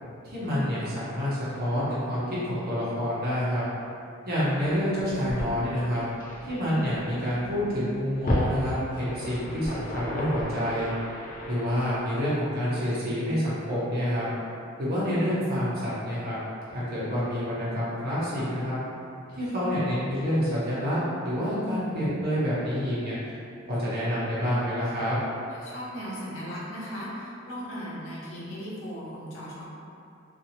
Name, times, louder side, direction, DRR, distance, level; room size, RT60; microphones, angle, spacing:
voice 1, 0.2-3.7 4.2-6.0 6.4-10.9 11.5-14.3 14.8-16.4 16.7-18.8 19.3-23.2 23.7-25.2, equal, 50° right, -10 dB, 1.0 m, -28 dB
sound 1, 4.8-12.0, left 1 dB, 40° left, 0.4 m, -34 dB
voice 2, 25.6-29.6, equal, 75° left, -7 dB, 0.8 m, -37 dB
2.8 x 2.6 x 2.8 m, 2.5 s
head